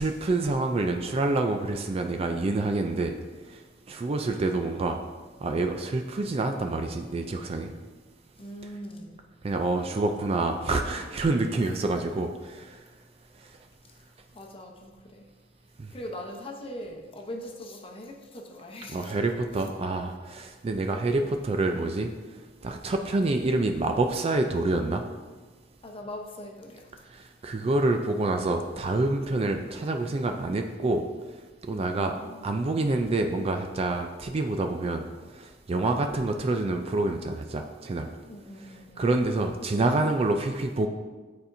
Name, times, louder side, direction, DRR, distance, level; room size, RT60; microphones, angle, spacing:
voice 1, 0.0-3.1 3.5-3.6 3.9-5.0 5.4-7.7 9.4-12.8 15.8-15.9 18.9-22.1 22.6-25.0 27.1-31.0 31.7-32.2 32.4-35.1 35.3-38.1 39.0-40.9, right 2 dB, 30° right, 5 dB, 0.3 m, -27 dB
voice 2, 8.4-9.2 13.9-14.0 14.3-15.3 15.9-19.2 25.8-26.9 31.7-32.7 38.3-39.1, left 1 dB, 30° left, 0 dB, 0.8 m, -41 dB
9.4 x 4.3 x 2.6 m, 1.3 s
head